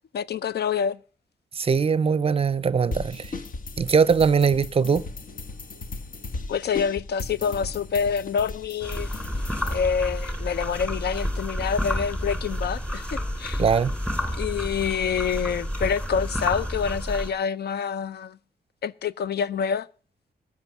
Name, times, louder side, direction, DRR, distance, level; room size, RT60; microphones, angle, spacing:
voice 1, 0.1-1.0 6.5-9.2 9.7-13.6 14.4-18.4 18.8-19.9, left 7 dB, 80° left, 0.6 m, -27 dB
voice 2, 1.6-3.2 3.8-5.0 13.6-13.9, right 6 dB, 35° right, 0.5 m, -21 dB
sound 1, 2.9-9.8, left 3 dB, 55° left, 1.3 m, -36 dB
sound 2, 8.8-17.3, equal, 5° left, 3.1 m, -30 dB
16.0 x 6.5 x 8.4 m
wide cardioid pair, 165°, 17 cm